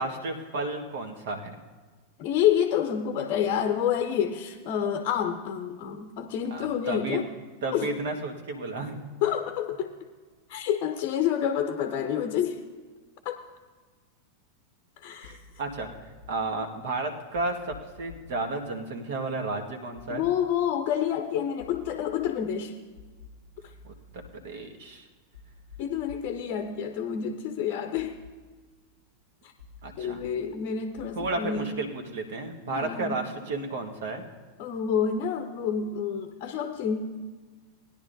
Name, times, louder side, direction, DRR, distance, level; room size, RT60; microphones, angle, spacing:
voice 1, 0.0-1.5 6.5-7.2 7.6-9.0 15.2-15.9 16.3-20.2 23.8-23.9 24.3-25.1 29.8-30.3 31.1-34.2, right 2 dB, 55° right, 3 dB, 1.6 m, -32 dB
voice 2, 2.2-7.3 7.7-7.9 9.2-10.1 10.5-12.6 13.2-13.4 15.0-15.4 20.1-22.8 25.8-28.2 29.4-29.5 30.0-31.9 32.7-33.2 34.6-37.1, left 8 dB, 40° left, 6 dB, 0.7 m, -28 dB
sound 1, 15.2-16.2 17.3-18.3 19.9-20.3 21.6-22.2 23.0-24.2 25.3-26.3 27.9-28.3 29.6-30.2 31.0-31.3, left 4 dB, 80° right, 1.9 m, -50 dB
20.0 x 10.5 x 2.7 m, 1.4 s
figure-of-eight pair, 90°, 0 cm